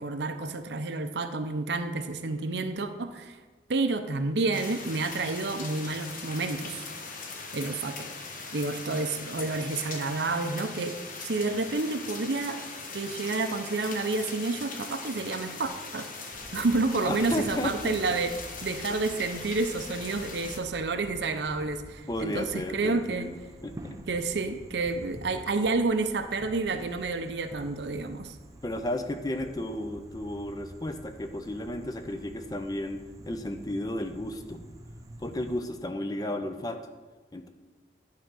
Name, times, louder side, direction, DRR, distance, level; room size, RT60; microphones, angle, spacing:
voice 1, 0.0-3.4 3.7-6.8 7.5-8.1 8.5-11.0 11.2-12.6 12.9-16.1 16.5-18.3 18.6-23.3 24.1-28.4, right 3 dB, 70° right, 8 dB, 0.6 m, -29 dB
sound 1, 4.5-20.6, left 4 dB, 50° left, 1.1 m, -40 dB
sound 2, 16.3-35.6, right 1 dB, 20° right, 0.6 m, -48 dB
voice 2, 17.0-18.0 22.1-23.4 23.6-24.0 28.6-34.6 35.2-36.8 37.3-37.5, left 1 dB, 20° left, 7 dB, 0.5 m, -33 dB
10.5 x 3.8 x 6.2 m, 1.3 s
head